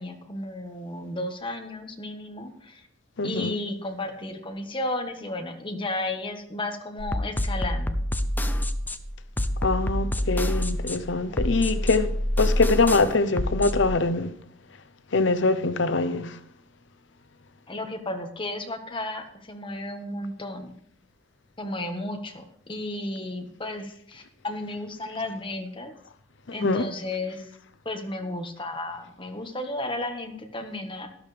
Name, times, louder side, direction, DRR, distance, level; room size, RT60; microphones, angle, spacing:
voice 1, 0.0-2.8 3.2-8.0 17.7-20.7 21.6-25.9 26.5-27.5 27.8-31.1, left 2 dB, 25° left, 1.5 m, -33 dB
voice 2, 3.2-3.5 9.6-12.1 12.4-14.3 15.1-16.3 26.6-26.8, left 3 dB, 70° left, 0.7 m, -23 dB
sound 1, 7.0-13.9, left 1 dB, 10° left, 0.5 m, -27 dB
12.5 x 12.5 x 3.4 m
head